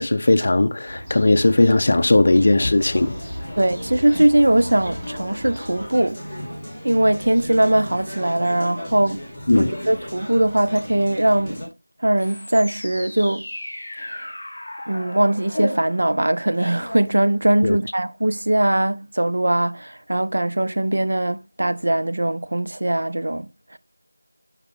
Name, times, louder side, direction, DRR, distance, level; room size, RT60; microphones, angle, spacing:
voice 1, 0.0-3.1 9.5-9.7 17.6-17.8, left 2 dB, 35° left, 0.6 m, -17 dB
sound 1, 0.9-5.9, equal, 20° right, 2.3 m, -37 dB
sound 2, 2.8-11.7, equal, ahead, 1.5 m, -36 dB
voice 2, 3.6-6.2 6.8-9.2 9.6-11.6 12.0-13.5 14.0-14.2 14.9-23.8, right 1 dB, 55° right, 0.6 m, -20 dB
sound 3, 12.2-17.8, left 1 dB, 20° left, 2.6 m, -35 dB
5.8 x 4.8 x 5.3 m
figure-of-eight pair, 175°, 0 cm